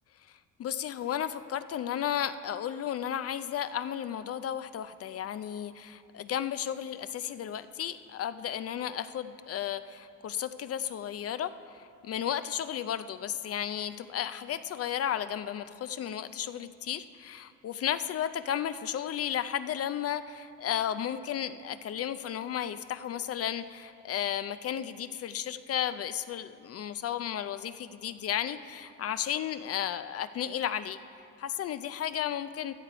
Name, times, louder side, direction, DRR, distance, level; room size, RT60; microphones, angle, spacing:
voice 1, 0.3-31.0 31.4-32.7, left 10 dB, 50° left, 12 dB, 0.4 m, -34 dB
15.5 x 6.6 x 4.8 m, 2.6 s
cardioid pair, 90°, 30 cm